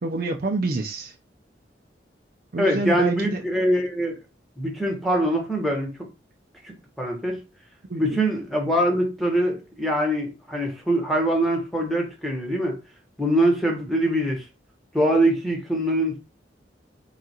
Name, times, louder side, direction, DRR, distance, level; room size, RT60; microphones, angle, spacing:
voice 1, 0.0-1.1 2.5-3.4 7.9-8.2, right 2 dB, 50° right, 0.5 m, -27 dB
voice 2, 2.6-4.1 4.6-5.9 6.6-7.4 8.0-12.8 13.2-14.4 14.9-16.2, right 1 dB, ahead, 1.0 m, -23 dB
3.7 x 2.4 x 4.2 m
head